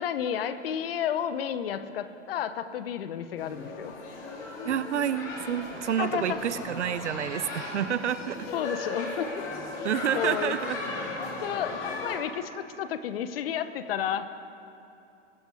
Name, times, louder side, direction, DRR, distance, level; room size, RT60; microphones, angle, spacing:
voice 1, 0.0-3.9 6.0-6.4 8.5-9.4 10.1-10.6 11.2-14.4, left 9 dB, 50° left, 12 dB, 0.9 m, -32 dB
sound 1, 3.4-12.2, left 2 dB, 35° left, 2.5 m, -36 dB
voice 2, 4.6-8.5 9.8-10.8, right 9 dB, 70° right, 15 dB, 0.7 m, -29 dB
22.0 x 8.2 x 4.8 m, 2.7 s
figure-of-eight pair, 115°, 37 cm